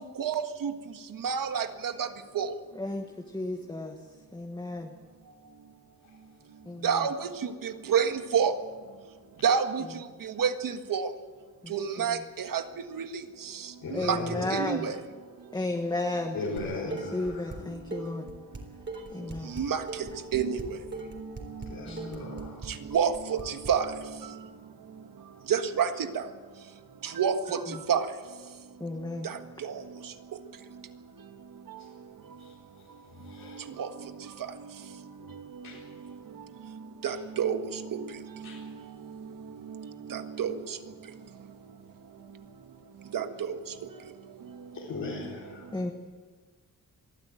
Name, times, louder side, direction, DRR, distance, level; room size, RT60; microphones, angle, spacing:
voice 1, 0.2-0.7 1.2-2.1 2.3-2.5 6.8-7.3 7.6-8.5 9.4-9.8 10.2-11.1 11.7-12.6 12.9-13.1 14.0-14.2 14.5-14.9 19.5-19.8 20.3-20.6 22.4-22.5 22.9-23.9 25.5-26.2 27.0-27.6 27.9-28.0 29.2-29.7 33.8-33.9 37.0-37.6 40.1-40.6 43.1-43.6, right 7 dB, 80° right, 8 dB, 1.6 m, -28 dB
voice 2, 2.7-4.0 4.3-4.9 6.6-7.1 11.6-12.2 13.9-14.9 15.5-16.4 16.8-18.3 19.1-19.6 21.9-22.2 27.7-27.8 28.8-29.3 45.7-45.9, left 2 dB, 15° left, 3 dB, 1.4 m, -34 dB
voice 3, 13.8-14.5 16.3-17.5 19.2-19.3 21.7-22.6 32.4-32.5 33.2-33.6 35.6-35.9 37.0-37.1 38.4-38.6 44.7-45.6, left 3 dB, 80° left, -5 dB, 4.2 m, -38 dB
Dishes pots and pans, 16.6-17.6 17.9-23.7, right 2 dB, 35° right, 3.8 m, -40 dB
23.0 x 14.5 x 9.1 m, 1.5 s
wide cardioid pair, 155°, 33 cm